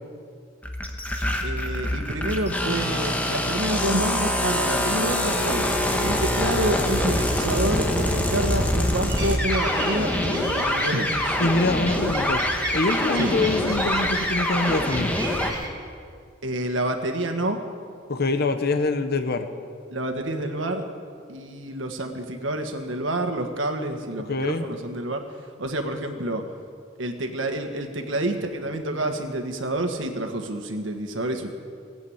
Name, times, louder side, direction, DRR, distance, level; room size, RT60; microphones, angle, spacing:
sound 1, 0.6-15.5, left 1 dB, 10° left, 1.3 m, -25 dB
voice 1, 1.4-5.7 6.0-11.4 13.1-13.3 16.4-17.6 19.9-20.8 21.3-25.2 25.6-26.4 27.0-31.5, right 1 dB, 75° right, 5 dB, 1.5 m, -28 dB
sound 2, 9.1-15.7, right 2 dB, 20° right, 2.7 m, -35 dB
voice 2, 11.4-12.4 12.7-15.1 18.1-19.5 24.3-24.7, left 3 dB, 55° left, 8 dB, 0.9 m, -24 dB
18.0 x 8.2 x 8.6 m, 2.2 s
head